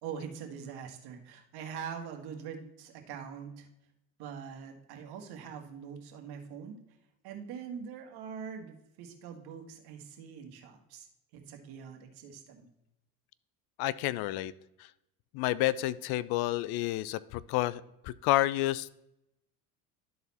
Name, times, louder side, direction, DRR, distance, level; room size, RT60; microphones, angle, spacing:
voice 1, 0.0-3.7 4.2-6.8 7.2-11.1 11.3-12.7, right 7 dB, 65° right, 4 dB, 1.7 m, -43 dB
voice 2, 13.8-14.5 15.3-19.0, left 15 dB, 60° left, 18 dB, 0.5 m, -30 dB
12.0 x 4.1 x 4.1 m, 0.85 s
supercardioid pair, 85°, 42 cm